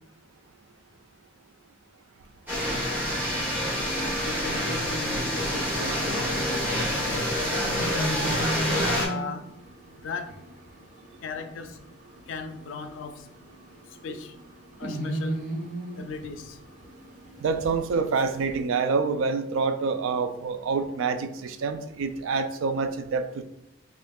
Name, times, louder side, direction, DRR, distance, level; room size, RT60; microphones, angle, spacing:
sound 1, 2.5-9.1, equal, 10° right, 1.2 m, -27 dB
voice 1, 4.3-6.3 6.7-8.2 8.8-9.4 9.9-10.3 11.2-11.8 12.3-13.3 14.0-14.3 14.8-15.4 16.0-16.6, left 4 dB, 75° left, 8 dB, 0.4 m, -37 dB
sound 2, 7.5-18.6, right 1 dB, 35° right, 0.6 m, -37 dB
voice 2, 17.4-23.4, right 4 dB, 85° right, 9 dB, 0.3 m, -27 dB
3.0 x 2.5 x 3.5 m, 0.82 s
head